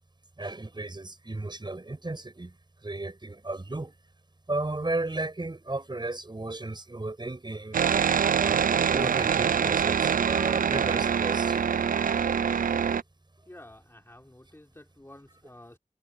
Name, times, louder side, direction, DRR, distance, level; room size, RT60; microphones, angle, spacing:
voice 1, 0.4-2.6 2.8-4.0 4.5-7.8 8.4-12.1, right 2 dB, 35° right, 5.9 m, -35 dB
sound 1, 7.7-13.0, right 7 dB, 80° right, 0.4 m, -24 dB
voice 2, 13.5-15.8, left 1 dB, 15° left, 4.9 m, -50 dB
wide cardioid pair, 95°, 14 cm